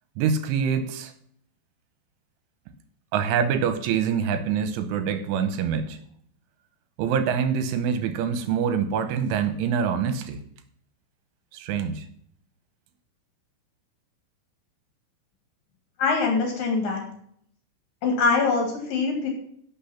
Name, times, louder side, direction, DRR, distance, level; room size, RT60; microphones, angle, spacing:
voice 1, 0.2-1.1 3.1-6.0 7.0-10.4 11.5-12.1, right 7 dB, 80° right, 10 dB, 3.3 m, -25 dB
voice 2, 16.0-17.0 18.0-19.3, left 4 dB, 55° left, 2 dB, 3.1 m, -23 dB
11.0 x 7.0 x 5.8 m, 0.64 s
omnidirectional pair, 5.8 m